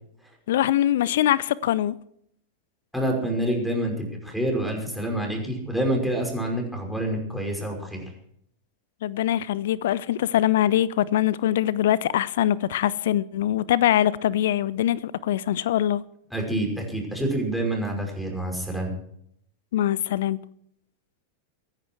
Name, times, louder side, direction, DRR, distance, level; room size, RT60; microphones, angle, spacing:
voice 1, 0.5-1.9 9.0-16.0 19.7-20.4, left 12 dB, 55° left, 0.6 m, -23 dB
voice 2, 2.9-8.0 16.3-18.9, right 1 dB, ahead, 5.5 m, -27 dB
23.0 x 10.5 x 4.7 m
figure-of-eight pair, 90°, 0 cm